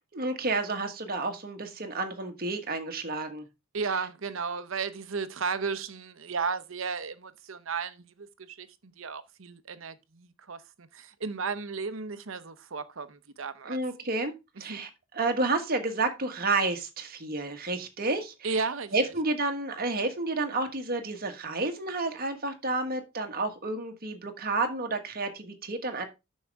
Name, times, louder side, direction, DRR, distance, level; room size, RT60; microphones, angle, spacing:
voice 1, 0.1-3.4 13.6-14.3 14.6-18.6 18.9-26.1, right 3 dB, 45° right, 1.5 m, -30 dB
voice 2, 3.7-13.8 14.7-14.8 18.4-19.1, right 5 dB, 65° right, 0.8 m, -34 dB
9.3 x 6.4 x 3.5 m
head